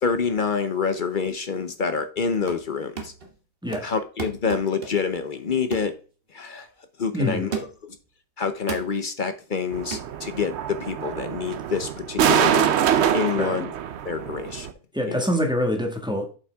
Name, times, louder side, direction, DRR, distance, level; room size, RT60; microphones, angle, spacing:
voice 1, 0.0-3.1 3.8-5.9 6.3-6.7 7.0-7.5 8.4-12.7 13.1-13.7 14.0-14.7 15.1-15.3, left 5 dB, 45° left, 0.7 m, -27 dB
sound 1, 2.2-2.7 3.0-3.3 3.7-5.2 5.7-6.0 6.4-6.6 7.5-7.9 8.7-9.0 9.9-10.1, right 5 dB, 45° right, 1.5 m, -34 dB
voice 2, 3.6-3.9 7.1-7.5 13.3-13.7 14.9-16.4, equal, 5° right, 1.5 m, -25 dB
sound 2, 9.7-14.7, right 9 dB, 60° right, 0.8 m, -24 dB
7.7 x 5.7 x 3.4 m
omnidirectional pair, 1.5 m